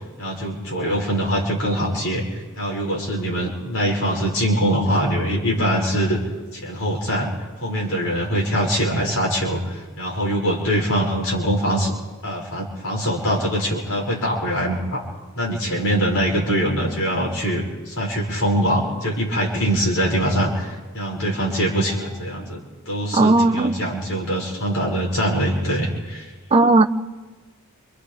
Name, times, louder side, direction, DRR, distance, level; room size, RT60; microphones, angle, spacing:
voice 1, 0.2-6.2 6.5-7.3 7.6-11.9 12.2-15.0 15.4-26.3, equal, 70° left, 6.3 m, -23 dB
voice 2, 23.2-23.7 26.5-26.8, right 2 dB, 25° right, 0.7 m, -15 dB
28.0 x 28.0 x 3.5 m
head